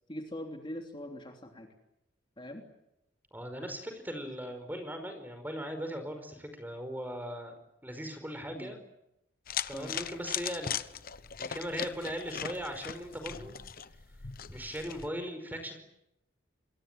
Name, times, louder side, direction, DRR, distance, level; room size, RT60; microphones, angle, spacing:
voice 1, 0.1-1.7 2.4-2.6 8.5-8.8 9.7-10.0, left 1 dB, 25° left, 3 dB, 3.2 m, -42 dB
voice 2, 3.3-7.5 7.8-8.8 9.7-10.8 11.4-13.6 14.5-15.8, equal, 10° right, 8 dB, 5.0 m, -39 dB
sound 1, 9.5-15.1, left 8 dB, 50° left, 1.0 m, -39 dB
28.0 x 22.0 x 9.3 m, 0.85 s
head